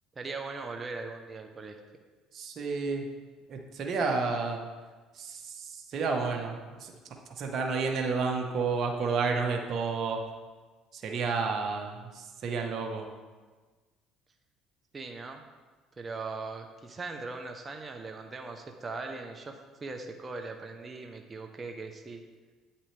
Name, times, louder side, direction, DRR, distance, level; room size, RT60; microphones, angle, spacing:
voice 1, 0.1-1.7 14.9-15.4 16.0-19.5 19.8-22.2, right 3 dB, 30° right, 4 dB, 0.8 m, -39 dB
voice 2, 2.3-3.0 3.5-4.7 5.2-6.9 7.4-10.2 11.0-13.1, right 4 dB, 55° right, 1 dB, 1.2 m, -31 dB
8.6 x 7.3 x 3.4 m, 1.3 s
supercardioid pair, 80°, 0 cm